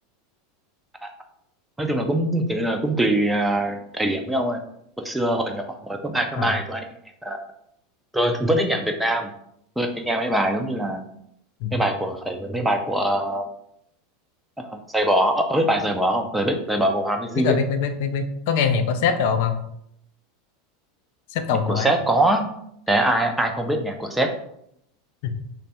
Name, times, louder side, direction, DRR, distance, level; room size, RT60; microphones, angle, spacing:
voice 1, 1.8-4.6 5.0-6.8 7.2-7.4 8.1-9.3 9.8-11.0 11.7-13.4 14.6-17.6 21.5-22.4 22.9-24.3, right 1 dB, 5° right, 4 dB, 0.4 m, -23 dB
voice 2, 17.4-19.5 21.3-21.9 25.2-25.3, left 6 dB, 55° left, 7 dB, 0.4 m, -23 dB
3.3 x 2.1 x 4.1 m, 0.73 s
figure-of-eight pair, 80°, 0 cm